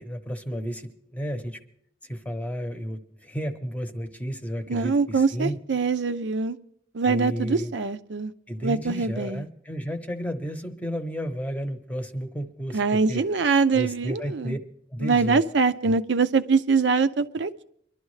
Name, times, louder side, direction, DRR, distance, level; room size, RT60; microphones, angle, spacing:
voice 1, 0.0-1.6 2.1-5.6 7.1-7.7 8.5-13.2 13.7-14.6 14.9-15.4 15.8-15.9, equal, 10° left, 0.8 m, -32 dB
voice 2, 4.7-6.6 6.9-8.3 8.6-9.5 12.7-14.6 15.0-17.6, right 4 dB, 90° right, 0.6 m, -23 dB
24.0 x 11.5 x 3.2 m
head